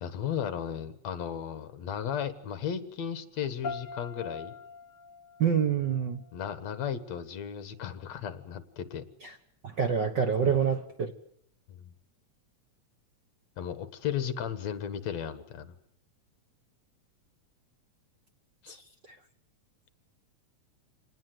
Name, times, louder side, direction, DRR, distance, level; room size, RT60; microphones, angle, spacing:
voice 1, 0.0-4.5 6.3-9.0 10.4-10.6 11.7-11.9 13.6-15.7 18.6-18.8, left 8 dB, 65° left, 13 dB, 2.5 m, -35 dB
sound 1, 3.6-6.6, left 4 dB, 40° left, 2.1 m, -43 dB
voice 2, 5.4-6.2 9.8-11.1 18.7-18.8, right 7 dB, 55° right, 7 dB, 1.3 m, -26 dB
26.5 x 19.5 x 7.9 m, 0.70 s
omnidirectional pair, 3.5 m